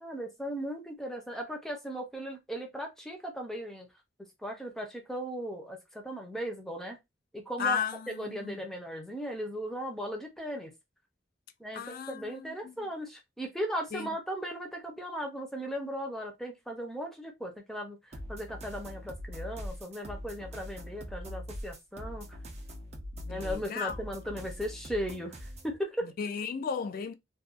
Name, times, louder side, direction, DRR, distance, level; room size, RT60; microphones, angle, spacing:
voice 1, 0.0-3.9 4.4-7.0 7.3-10.7 11.6-22.3 23.3-26.1, equal, ahead, 0.7 m, -37 dB
voice 2, 7.6-8.6 11.7-12.9 13.9-14.1 23.2-24.0 26.0-27.1, left 6 dB, 50° left, 0.3 m, -35 dB
sound 1, 18.1-25.7, equal, 35° right, 0.6 m, -42 dB
2.5 x 2.3 x 2.3 m
head